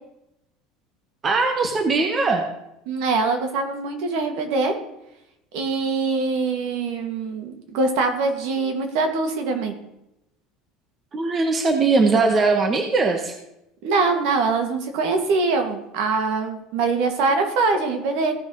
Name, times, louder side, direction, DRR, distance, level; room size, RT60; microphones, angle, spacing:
voice 1, 1.2-2.5 11.1-13.3, right 3 dB, 25° right, 5 dB, 1.0 m, -20 dB
voice 2, 2.9-4.7 5.5-9.7 13.8-18.3, right 4 dB, 65° right, 4 dB, 1.9 m, -23 dB
16.0 x 5.9 x 3.9 m, 0.85 s
cardioid pair, 150°, 0 cm